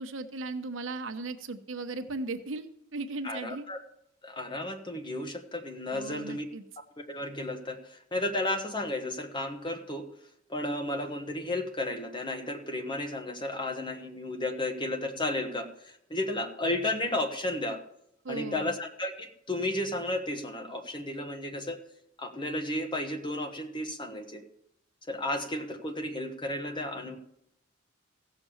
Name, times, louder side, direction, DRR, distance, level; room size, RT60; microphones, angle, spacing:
voice 1, 0.0-3.7 5.9-6.6 18.2-18.7, right 3 dB, 70° right, 8 dB, 1.0 m, -37 dB
voice 2, 3.2-3.8 4.2-6.4 7.0-10.1 10.5-17.8 18.3-21.8 22.2-24.4 25.1-27.2, left 1 dB, 25° left, 6 dB, 1.3 m, -33 dB
15.5 x 7.0 x 7.1 m, 0.75 s
head